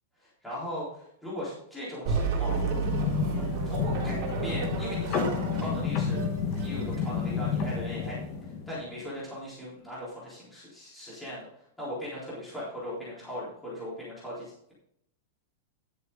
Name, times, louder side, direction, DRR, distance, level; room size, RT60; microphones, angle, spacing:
voice 1, 0.2-2.6 3.7-6.2 6.6-8.2 8.7-11.5 11.8-14.7, equal, 5° left, -9 dB, 3.8 m, -38 dB
sound 1, 2.0-7.5, right 5 dB, 35° right, 3.9 m, -33 dB
sound 2, 2.5-9.0, left 6 dB, 30° left, 1.6 m, -31 dB
11.5 x 7.8 x 3.8 m, 0.73 s
supercardioid pair, 175°, 0 cm